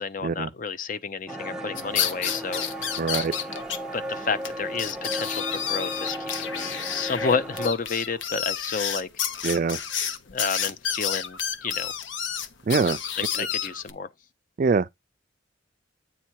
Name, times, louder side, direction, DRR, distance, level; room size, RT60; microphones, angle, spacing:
voice 1, 0.0-2.6 3.9-9.3 10.3-11.9 13.2-14.1, left 5 dB, 45° left, 0.5 m, -30 dB
sound 1, 1.3-7.7, equal, 5° right, 0.7 m, -35 dB
sound 2, 1.8-3.8 4.1-4.2 4.4-4.5 4.8-13.9, left 8 dB, 80° left, 0.8 m, -30 dB
voice 2, 3.0-3.3 9.4-9.8 12.7-13.0 14.6-14.9, right 4 dB, 45° right, 0.4 m, -23 dB
8.6 x 3.5 x 4.6 m
head